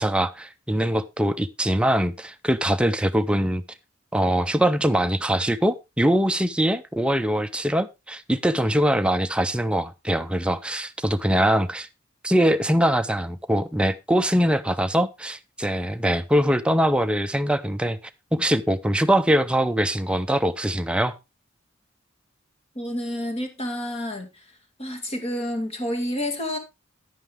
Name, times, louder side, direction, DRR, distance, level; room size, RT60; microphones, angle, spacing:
voice 1, 0.0-3.6 4.1-11.9 12.2-18.0 18.3-21.2, equal, 5° right, 0.5 m, -22 dB
voice 2, 22.8-24.4 24.8-26.6, left 1 dB, 30° left, 2.2 m, -29 dB
10.0 x 9.3 x 3.5 m
head